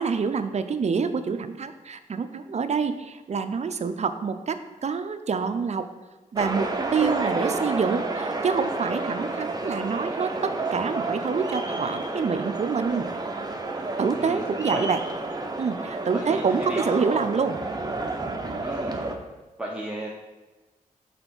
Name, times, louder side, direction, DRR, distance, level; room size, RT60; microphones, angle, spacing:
voice 1, 0.0-5.9 6.3-13.1 14.0-15.0 15.6-17.6, right 5 dB, 50° right, 10 dB, 0.6 m, -27 dB
sound 1, 6.4-19.1, right 2 dB, 25° right, 0.9 m, -30 dB
voice 2, 16.1-17.0 18.6-19.0 19.6-20.1, right 1 dB, 5° right, -4 dB, 1.1 m, -34 dB
5.8 x 4.3 x 5.5 m, 1.1 s
cardioid pair, 55°, 15 cm